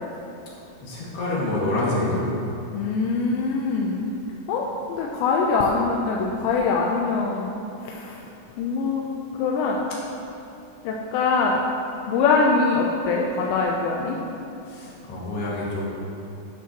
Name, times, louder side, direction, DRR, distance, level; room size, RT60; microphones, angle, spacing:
voice 1, 0.8-2.3 14.6-15.9, left 2 dB, 65° left, -6 dB, 4.1 m, -27 dB
voice 2, 2.7-4.1 4.5-4.6 5.0-7.5 7.8-8.2 8.6-9.1 9.4-9.8 10.9-11.6 12.1-14.2, left 4 dB, 85° left, -1 dB, 2.9 m, -23 dB
13.0 x 12.0 x 3.1 m, 2.8 s
omnidirectional pair, 5.2 m